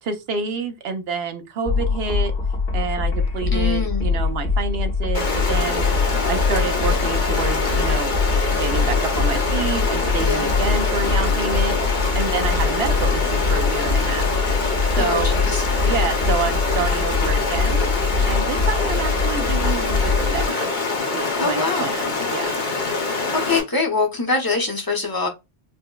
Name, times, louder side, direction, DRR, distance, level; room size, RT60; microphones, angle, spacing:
voice 1, 0.0-2.3 2.7-5.9 6.3-8.1 8.5-14.3 14.8-15.3 15.8-17.9 18.3-20.7 21.1-22.6, right 5 dB, 65° right, 0.9 m, -28 dB
sound 1, 1.7-20.5, left 4 dB, 70° left, 1.3 m, -23 dB
voice 2, 3.5-4.1 10.2-10.5 15.0-15.6 21.4-21.9 23.4-25.3, left 3 dB, 25° left, 0.7 m, -24 dB
Stream, 5.1-23.6, left 3 dB, 50° left, 0.9 m, -25 dB
4.5 x 2.1 x 2.2 m
omnidirectional pair, 1.1 m